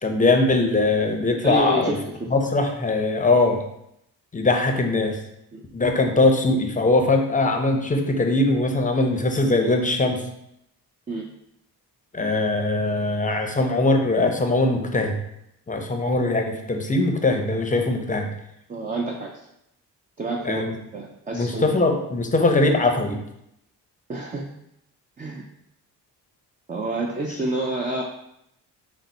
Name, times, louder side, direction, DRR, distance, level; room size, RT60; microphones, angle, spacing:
voice 1, 0.0-1.9 2.3-3.6 4.3-5.2 5.7-10.2 12.1-15.1 15.7-18.3 20.4-20.7 21.3-23.2, left 2 dB, 20° left, 4 dB, 0.6 m, -21 dB
voice 2, 1.4-2.3 5.5-5.6 11.1-11.3 18.7-19.3 20.2-21.8 24.1-24.5 25.2-25.4 26.7-28.0, right 2 dB, 20° right, 0 dB, 0.4 m, -28 dB
4.0 x 2.0 x 4.2 m, 0.78 s
cardioid pair, 65°, 41 cm